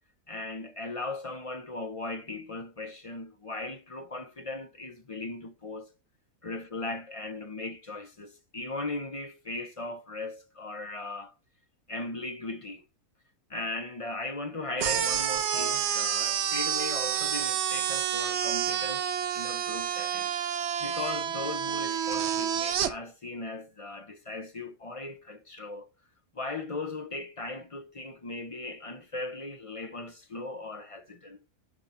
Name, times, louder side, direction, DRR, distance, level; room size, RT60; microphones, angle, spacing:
voice 1, 0.3-5.9 6.4-11.3 11.9-12.8 13.5-20.3 20.8-25.9 26.3-31.6, left 2 dB, 35° left, 0.6 m, -38 dB
sound 1, 14.8-22.9, right 9 dB, 55° right, 0.9 m, -29 dB
11.0 x 3.8 x 5.4 m
omnidirectional pair, 1.6 m